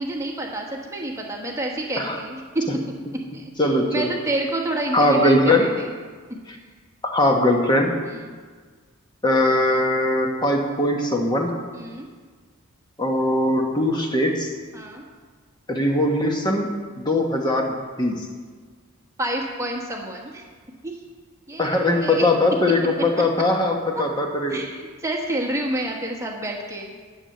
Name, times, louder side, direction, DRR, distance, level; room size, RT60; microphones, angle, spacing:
voice 1, 0.0-2.7 3.3-3.5 3.9-5.9 8.0-8.4 11.7-12.1 14.7-15.0 19.2-20.4 20.8-21.0 21.5-22.2 24.5-26.9, right 1 dB, 15° right, 0 dB, 1.2 m, -28 dB
voice 2, 3.6-4.2 4.9-5.7 7.0-7.9 9.2-11.5 13.0-14.5 15.7-16.7 17.0-18.3 21.6-24.6, left 1 dB, 20° left, 2 dB, 1.2 m, -20 dB
11.0 x 6.7 x 7.8 m, 1.5 s
head